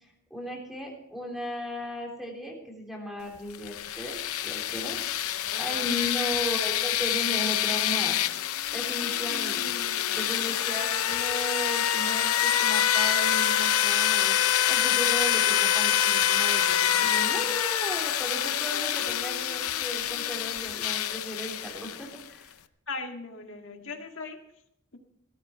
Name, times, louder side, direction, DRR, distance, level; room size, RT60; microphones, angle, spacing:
voice 1, 0.3-8.2 8.7-9.6 10.1-22.5, equal, ahead, -1 dB, 3.5 m, -36 dB
sound 1, 3.5-22.2, left 11 dB, 85° left, 0.7 m, -26 dB
voice 2, 5.5-5.9 9.3-10.2 22.9-24.4, left 3 dB, 60° left, 3 dB, 1.9 m, -39 dB
17.5 x 13.5 x 4.5 m, 0.77 s
head